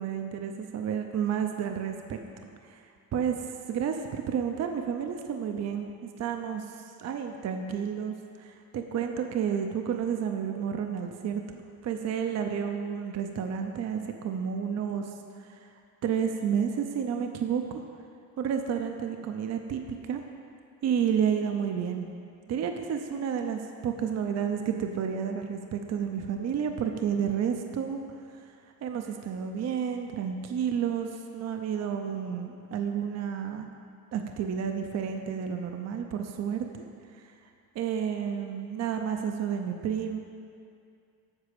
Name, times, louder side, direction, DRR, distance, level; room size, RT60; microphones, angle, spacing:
voice 1, 0.0-2.2 2.6-2.8 3.1-3.4 3.7-5.9 6.2-15.7 16.0-17.8 18.4-19.8 20.1-20.2 20.8-22.1 22.5-28.0 28.3-28.4 28.8-33.7 34.1-36.8 37.1-37.3 37.7-40.2, right 7 dB, 45° right, 5 dB, 0.6 m, -31 dB
8.1 x 6.0 x 6.7 m, 2.4 s
cardioid pair, 155°, 37 cm